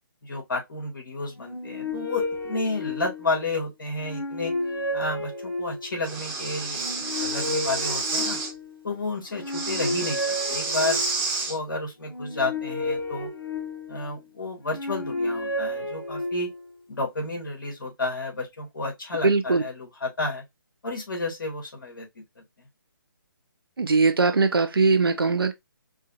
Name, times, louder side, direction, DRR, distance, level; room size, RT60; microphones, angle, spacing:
voice 1, 0.2-4.5 4.9-6.8 7.2-8.4 8.8-11.0 11.5-13.3 13.9-16.5 16.9-20.4 20.8-22.1 22.6-22.7, left 2 dB, 65° left, 2.0 m, -31 dB
sound 1, 1.4-3.5 4.0-6.0 6.7-8.8 9.3-11.3 12.0-14.2 14.7-16.7, left 2 dB, 80° left, 1.6 m, -32 dB
Breathing, 6.0-8.5 9.5-11.6, right 4 dB, 20° right, 1.2 m, -29 dB
voice 2, 19.2-19.6 23.8-25.5, right 4 dB, 85° right, 0.8 m, -20 dB
4.7 x 2.3 x 2.6 m
figure-of-eight pair, 150°, 12 cm